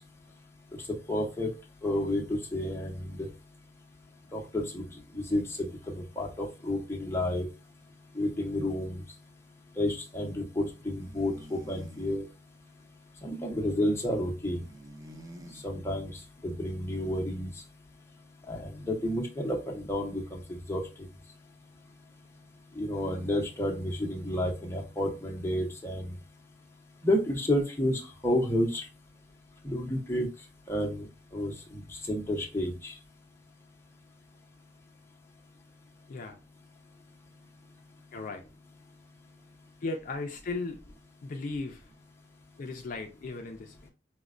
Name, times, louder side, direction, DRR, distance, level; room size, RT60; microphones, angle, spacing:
voice 1, 1.1-1.5 1.8-3.3 4.3-4.8 5.1-7.5 8.1-9.0 9.8-12.2 13.2-14.6 15.6-16.1 16.4-17.5 18.5-20.8 22.8-26.1 27.0-28.8 29.6-30.3 30.7-31.1 31.3-31.8 32.1-32.9, left 1 dB, 15° left, 0.7 m, -30 dB
sound 1, 11.0-12.2 14.6-15.7, equal, 20° right, 0.4 m, -47 dB
voice 2, 38.1-38.4 39.8-40.8 41.2-41.8 42.6-43.9, left 3 dB, 50° left, 0.4 m, -36 dB
5.0 x 2.1 x 2.4 m
head